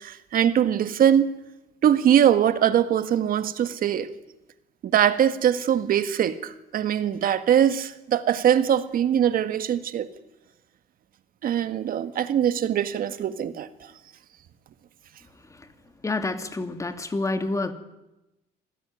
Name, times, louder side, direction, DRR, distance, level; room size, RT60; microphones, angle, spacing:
voice 1, 0.0-1.3 1.8-4.1 4.8-10.1 11.4-13.7, right 9 dB, 60° right, 11 dB, 1.8 m, -22 dB
voice 2, 16.0-17.7, left 2 dB, 20° left, 8 dB, 2.3 m, -28 dB
26.0 x 16.5 x 9.4 m, 0.98 s
cardioid pair, 110°, 17 cm